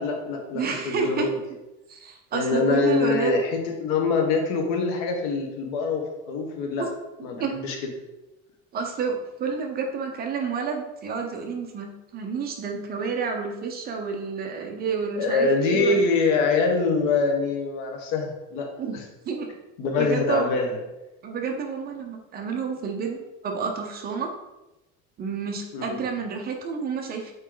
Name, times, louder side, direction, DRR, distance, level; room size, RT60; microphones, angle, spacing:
voice 1, 0.0-1.4 2.3-6.8 7.2-7.8 15.2-18.7 19.8-20.8 25.7-26.0, left 4 dB, 80° left, 3 dB, 1.4 m, -24 dB
voice 2, 0.5-1.3 1.9-3.4 6.8-6.9 7.4-7.5 8.7-16.0 18.8-19.5 20.0-20.5 21.2-24.3 25.2-27.3, right 5 dB, 30° right, 3 dB, 0.7 m, -29 dB
8.0 x 3.2 x 3.9 m, 0.98 s
cardioid pair, 170°, 32 cm